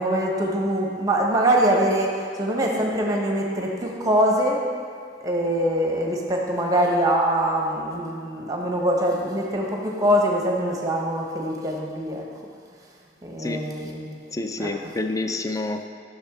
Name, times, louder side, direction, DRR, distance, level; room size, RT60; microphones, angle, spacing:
voice 1, 0.0-4.6 5.2-12.2 13.2-14.2 14.6-14.9, right 1 dB, 20° right, -1 dB, 1.1 m, -23 dB
voice 2, 14.3-15.8, left 2 dB, 20° left, 6 dB, 0.4 m, -28 dB
13.5 x 6.3 x 3.7 m, 2.1 s
head